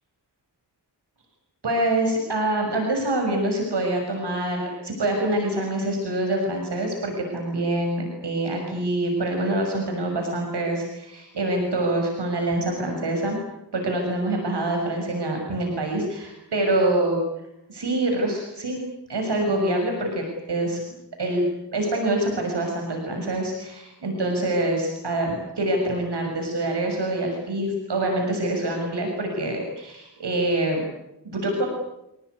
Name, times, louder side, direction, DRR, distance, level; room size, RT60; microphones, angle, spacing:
voice 1, 1.6-13.4 13.7-17.2 17.7-18.8 19.1-20.8 21.2-21.4 21.7-30.8 31.2-31.7, right 1 dB, 70° right, 2 dB, 7.0 m, -25 dB
29.0 x 18.5 x 9.7 m, 0.87 s
wide cardioid pair, 105°, 42 cm